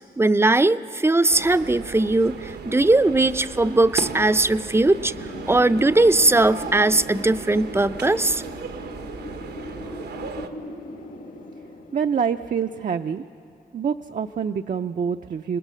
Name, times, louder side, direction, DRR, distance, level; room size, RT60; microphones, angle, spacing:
voice 1, 0.2-5.1 5.5-8.4 9.9-10.0, right 2 dB, 15° right, 14 dB, 0.6 m, -19 dB
sound 1, 1.3-10.5, right 5 dB, 85° right, 1.2 m, -35 dB
Wind, 4.9-13.6, left 2 dB, 55° left, 1.5 m, -40 dB
voice 2, 10.7-11.1 11.9-13.2 13.7-15.6, right 7 dB, 55° right, 7 dB, 0.6 m, -26 dB
27.5 x 20.0 x 6.3 m, 2.5 s
cardioid pair, 75°, 17 cm